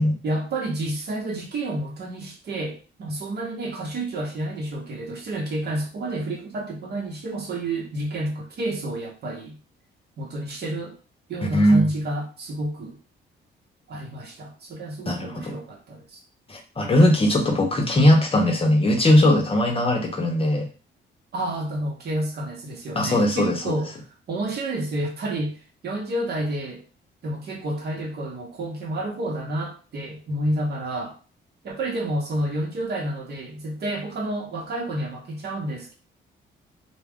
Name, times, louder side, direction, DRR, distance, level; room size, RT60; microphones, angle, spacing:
voice 1, 0.2-9.6 10.2-11.0 11.3-13.0 13.9-16.2 21.3-24.0 24.3-26.8 27.2-31.1 31.6-35.9, right 1 dB, 55° right, 1 dB, 0.9 m, -30 dB
voice 2, 11.5-11.9 15.1-15.5 16.5-20.7 23.0-23.7, left 1 dB, 30° left, 2 dB, 0.7 m, -19 dB
2.3 x 2.1 x 3.5 m, 0.36 s
cardioid pair, 90°, 20 cm